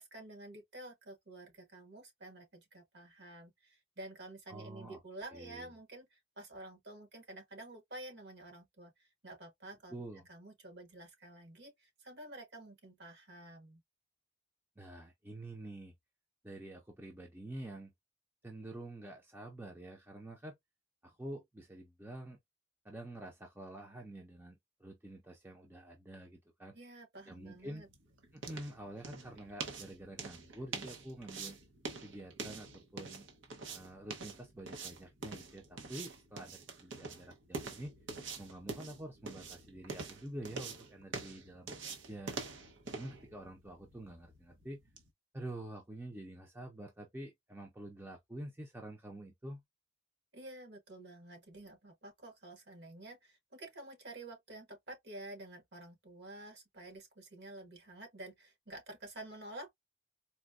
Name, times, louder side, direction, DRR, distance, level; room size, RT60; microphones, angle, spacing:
voice 1, 0.0-9.9 10.3-13.8 26.7-27.9 50.3-59.7, right 1 dB, 60° right, 1.4 m, -50 dB
voice 2, 4.5-5.0 5.3-5.7 9.9-10.3 14.8-15.9 16.4-17.9 18.4-20.6 21.0-22.4 22.8-26.8 27.3-27.8 28.3-31.6 32.0-33.3 33.7-37.9 38.4-42.4 42.9-44.8 45.3-49.6, right 1 dB, 10° right, 0.6 m, -47 dB
sound 1, 27.3-45.1, right 4 dB, 75° right, 0.9 m, -46 dB
4.2 x 2.2 x 2.4 m
head